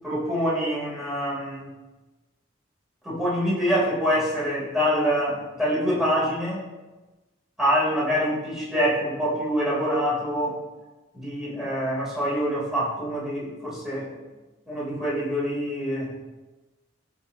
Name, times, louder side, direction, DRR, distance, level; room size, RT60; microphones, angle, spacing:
voice 1, 0.0-1.7 3.0-6.7 7.6-10.6 11.1-14.1 14.7-16.2, equal, ahead, -8 dB, 3.5 m, -25 dB
17.0 x 5.8 x 2.9 m, 1.2 s
head